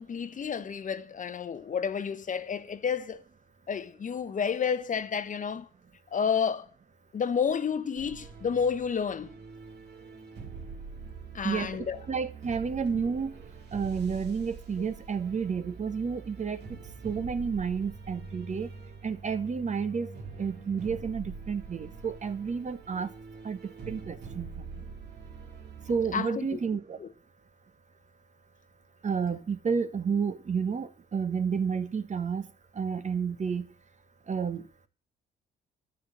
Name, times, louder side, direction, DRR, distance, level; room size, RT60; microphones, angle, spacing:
voice 1, 0.0-3.2 3.7-5.7 6.1-6.7 7.1-9.3 11.3-12.0 26.1-26.6 27.0-27.1, left 6 dB, 40° left, 0.8 m, -30 dB
sound 1, 8.0-26.2, right 4 dB, 60° right, 1.9 m, -44 dB
voice 2, 11.4-11.8 12.1-13.3 13.7-16.6 17.0-18.7 19.0-20.1 20.4-23.1 23.4-23.6 23.9-24.5 25.9-27.0 29.0-32.4 32.8-33.6 34.3-34.6, right 6 dB, 40° right, 1.1 m, -30 dB
10.0 x 6.3 x 7.4 m
supercardioid pair, 55°, 19 cm